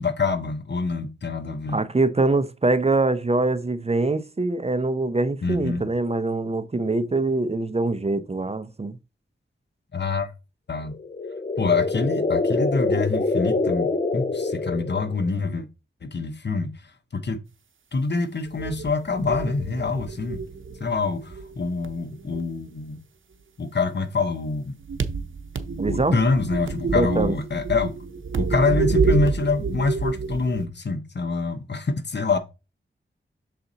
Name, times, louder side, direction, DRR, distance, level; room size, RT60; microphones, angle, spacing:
voice 1, 0.0-1.8 5.4-5.8 9.9-10.3 10.7-10.9 11.6-15.7 16.0-16.7 17.1-17.4 17.9-20.4 20.8-23.0 23.6-24.7 25.9-27.9 28.4-32.4, left 4 dB, 60° left, 1.1 m, -25 dB
voice 2, 1.7-9.0 25.8-26.1 26.9-27.3, right 2 dB, 30° right, 0.7 m, -23 dB
sound 1, 10.9-15.3, left 3 dB, 35° left, 0.7 m, -25 dB
sound 2, 18.5-21.0 21.3-22.4 24.8-30.6, right 4 dB, 75° right, 0.8 m, -28 dB
6.7 x 4.3 x 4.0 m
cardioid pair, 55°, 21 cm